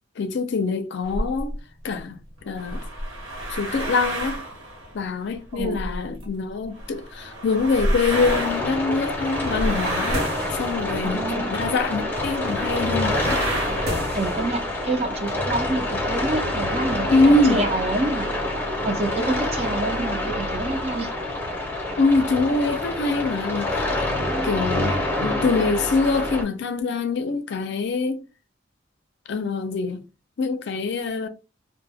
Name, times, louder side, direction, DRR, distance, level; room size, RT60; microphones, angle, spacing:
voice 1, 0.2-1.5 1.8-2.8 3.5-4.4 4.9-10.3 10.6-13.4 17.1-17.6 22.0-23.9 24.4-28.2 29.3-30.0 30.4-31.3, left 3 dB, 60° left, 0.4 m, -24 dB
sound 1, 1.0-1.6 2.4-6.3 6.7-11.3 11.8-11.9 12.1-14.0, right 1 dB, 90° right, 1.0 m, -31 dB
sound 2, 8.0-16.7, left 1 dB, 55° right, 0.9 m, -38 dB
sound 3, 8.1-26.4, left 1 dB, 10° left, 0.6 m, -27 dB
voice 2, 11.0-11.6 14.2-18.3 18.8-21.1, right 2 dB, 30° right, 0.4 m, -27 dB
2.1 x 2.1 x 3.3 m
head